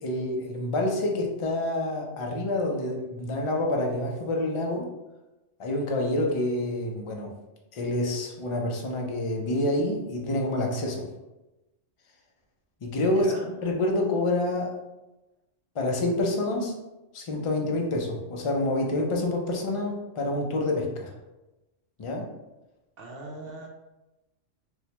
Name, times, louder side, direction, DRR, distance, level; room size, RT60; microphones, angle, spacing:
voice 1, 0.0-4.9 5.6-7.3 7.7-11.0 12.8-13.3 13.6-14.8 15.7-16.7 17.1-21.1 22.0-22.3, left 1 dB, 55° left, 1 dB, 0.3 m, -27 dB
voice 2, 13.0-13.5 23.0-23.7, right 2 dB, 60° right, -1 dB, 0.7 m, -40 dB
4.4 x 2.1 x 2.9 m, 1.0 s
omnidirectional pair, 1.3 m